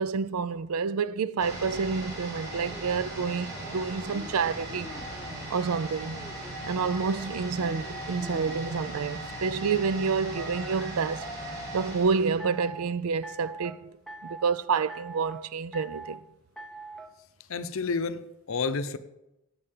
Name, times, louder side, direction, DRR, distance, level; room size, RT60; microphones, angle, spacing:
voice 1, 0.0-4.9 5.5-6.2 6.6-11.3 11.7-13.9 14.2-16.2, right 5 dB, 75° right, 0.4 m, -28 dB
sound 1, 1.4-13.1 13.4-13.5, right 1 dB, 50° right, 3.8 m, -38 dB
sound 2, 2.6-5.5 6.1-9.0 10.3-11.9 12.4-12.9 13.2-13.8 14.1-14.5 14.9-15.4 15.7-16.2 16.6-17.1, right 1 dB, ahead, 0.7 m, -44 dB
voice 2, 17.5-19.0, left 4 dB, 65° left, 0.6 m, -30 dB
10.0 x 8.3 x 5.8 m
head